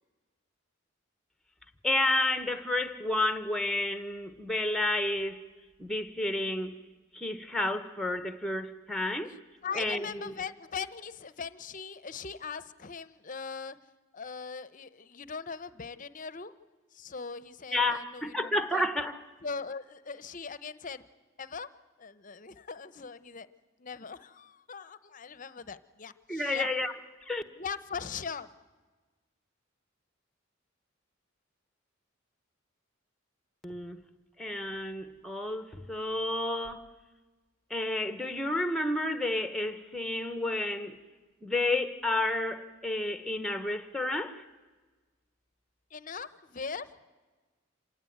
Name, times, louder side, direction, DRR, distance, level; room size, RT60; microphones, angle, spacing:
voice 1, 1.8-5.4 5.8-6.8 7.1-9.4 9.7-10.3 17.7-19.2 26.3-26.9 27.2-27.4 33.6-34.0 34.4-36.9 37.7-41.0 41.4-44.4, left 2 dB, ahead, 1.1 m, -31 dB
voice 2, 9.6-13.8 14.1-16.5 16.9-18.9 19.4-21.0 21.4-21.7 22.0-23.5 23.8-26.7 27.4-28.5 45.9-46.9, left 5 dB, 40° left, 0.8 m, -40 dB
26.5 x 17.5 x 9.3 m
head